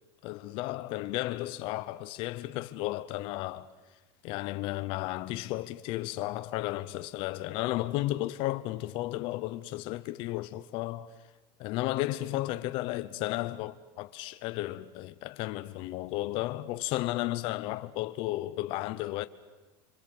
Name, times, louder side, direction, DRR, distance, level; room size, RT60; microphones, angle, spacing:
voice 1, 0.2-3.7 4.2-11.1 11.6-19.3, left 17 dB, 50° left, 0.8 m, -33 dB
26.0 x 25.5 x 7.9 m
supercardioid pair, 155°, 11 cm